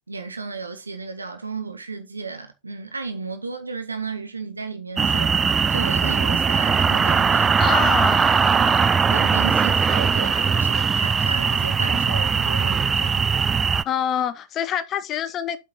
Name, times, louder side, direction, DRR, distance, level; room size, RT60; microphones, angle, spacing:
voice 1, 0.1-5.3 5.7-7.7 9.1-13.3, right 4 dB, 80° right, 1.7 m, -34 dB
sound 1, 5.0-13.8, right 6 dB, 20° right, 0.4 m, -20 dB
voice 2, 7.6-8.9 13.8-15.6, left 9 dB, 30° left, 0.8 m, -26 dB
8.8 x 5.5 x 3.8 m
figure-of-eight pair, 90°, 0 cm